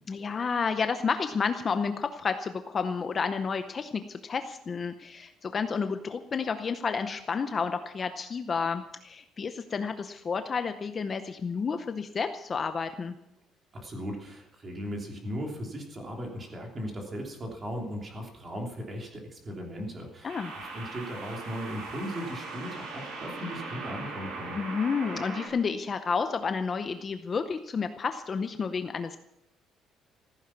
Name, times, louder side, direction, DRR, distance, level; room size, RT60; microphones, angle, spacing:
voice 1, 0.1-13.1 20.2-20.5 24.6-29.2, left 5 dB, 25° left, 8 dB, 0.7 m, -31 dB
voice 2, 13.7-24.6, equal, 25° right, 1 dB, 3.0 m, -37 dB
sound 1, 16.3-16.6 20.3-25.5, right 3 dB, 80° right, 5.7 m, -39 dB
15.0 x 14.5 x 5.9 m, 0.84 s
cardioid pair, 175°, 0 cm